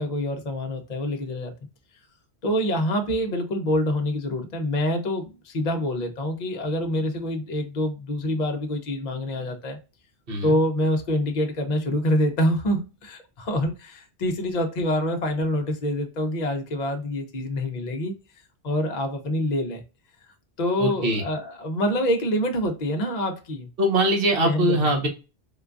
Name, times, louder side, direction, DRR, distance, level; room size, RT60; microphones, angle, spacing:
voice 1, 0.0-1.5 2.4-9.8 10.4-18.1 18.6-19.8 20.6-23.7 24.4-25.1, left 1 dB, 45° left, 0.7 m, -26 dB
voice 2, 20.8-21.2 23.8-25.1, right 1 dB, 60° right, 1.1 m, -22 dB
3.8 x 2.3 x 2.4 m
omnidirectional pair, 1.1 m